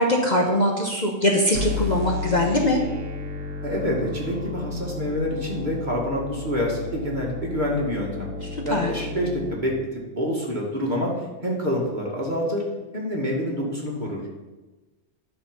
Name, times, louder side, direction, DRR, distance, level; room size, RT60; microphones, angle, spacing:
voice 1, 0.0-2.8 8.5-9.1, left 1 dB, 35° left, 1 dB, 1.1 m, -22 dB
sound 1, 1.5-9.5, left 4 dB, 75° right, 1.6 m, -33 dB
voice 2, 3.6-8.3 8.6-11.1 11.4-12.6 12.9-14.2, equal, 35° right, -2 dB, 2.3 m, -27 dB
11.0 x 6.4 x 5.4 m, 1.2 s
omnidirectional pair, 1.3 m